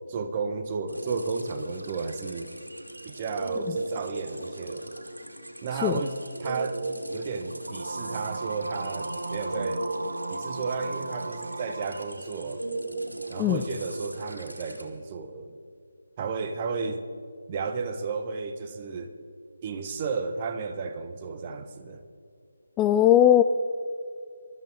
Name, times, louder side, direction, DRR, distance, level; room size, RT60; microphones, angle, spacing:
voice 1, 0.1-2.5 3.0-4.9 5.6-6.8 7.1-9.9 10.3-12.7 13.3-15.6 16.2-17.0 17.5-19.1 19.6-22.0, right 4 dB, 30° right, 8 dB, 1.2 m, -33 dB
sound 1, 0.9-14.8, right 2 dB, 85° right, 2.7 m, -37 dB
sound 2, 7.7-12.2, right 2 dB, 65° right, 1.3 m, -35 dB
voice 2, 22.8-23.4, left 11 dB, 15° left, 10 dB, 0.3 m, -19 dB
23.0 x 13.5 x 4.2 m, 2.3 s
figure-of-eight pair, 150°, 0 cm